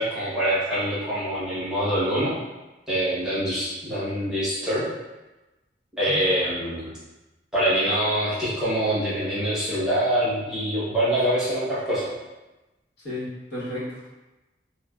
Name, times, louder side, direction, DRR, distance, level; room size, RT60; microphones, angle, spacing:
voice 1, 0.0-2.4 2.9-4.8 6.0-6.9 7.5-12.1, right 1 dB, 5° right, -12 dB, 0.8 m, -25 dB
voice 2, 13.0-14.1, left 1 dB, 70° left, -9 dB, 1.0 m, -33 dB
3.1 x 2.1 x 2.3 m, 1.1 s
head